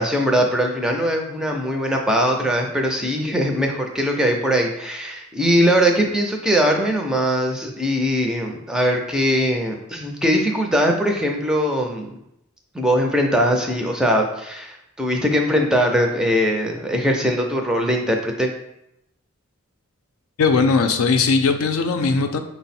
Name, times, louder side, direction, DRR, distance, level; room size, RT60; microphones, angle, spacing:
voice 1, 0.0-12.2 12.7-18.5, equal, 5° right, 1 dB, 0.4 m, -21 dB
voice 2, 20.4-22.4, left 4 dB, 80° left, 7 dB, 0.4 m, -19 dB
5.9 x 2.0 x 4.1 m, 0.82 s
head